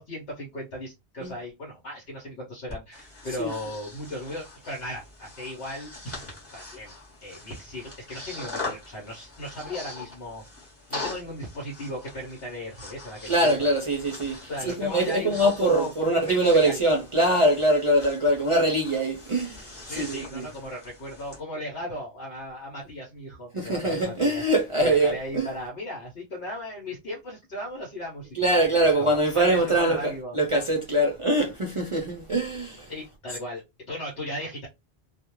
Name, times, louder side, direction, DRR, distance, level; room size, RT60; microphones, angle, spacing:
voice 1, 0.0-6.9 7.2-10.4 10.9-13.7 14.4-16.8 19.8-24.5 24.8-30.4 32.9-34.7, left 1 dB, 70° left, 1.0 m, -36 dB
Breathing, 2.7-21.4, left 2 dB, 15° left, 0.9 m, -42 dB
voice 2, 13.3-20.5 23.5-25.5 28.4-32.9, right 1 dB, 55° right, 0.3 m, -23 dB
2.3 x 2.1 x 2.9 m
omnidirectional pair, 1.1 m